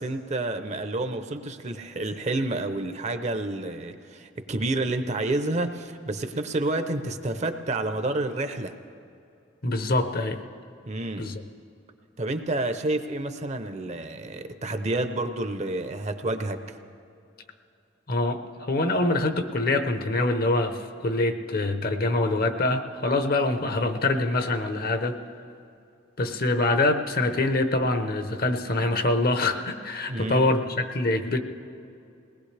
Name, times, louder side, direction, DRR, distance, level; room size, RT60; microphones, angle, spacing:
voice 1, 0.0-8.8 10.9-11.4 12.2-16.8 30.1-30.6, right 2 dB, 35° right, 8 dB, 0.7 m, -29 dB
voice 2, 9.6-10.4 11.2-11.4 18.1-25.2 26.2-30.6 30.9-31.4, left 2 dB, 50° left, 7 dB, 0.9 m, -25 dB
21.0 x 19.0 x 3.4 m, 2.6 s
head